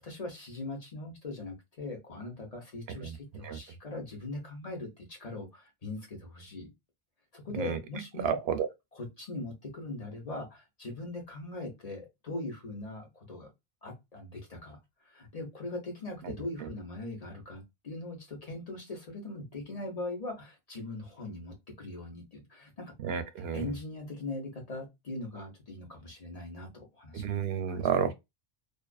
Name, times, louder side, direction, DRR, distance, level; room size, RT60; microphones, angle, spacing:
voice 1, 0.0-6.7 7.3-8.4 8.9-13.5 13.8-14.8 15.0-22.9 23.5-27.2 27.7-28.0, left 2 dB, 40° left, 0.9 m, -40 dB
voice 2, 8.2-8.7 23.0-23.7 27.1-28.1, right 7 dB, 80° right, 0.8 m, -30 dB
2.5 x 2.4 x 2.2 m
omnidirectional pair, 1.0 m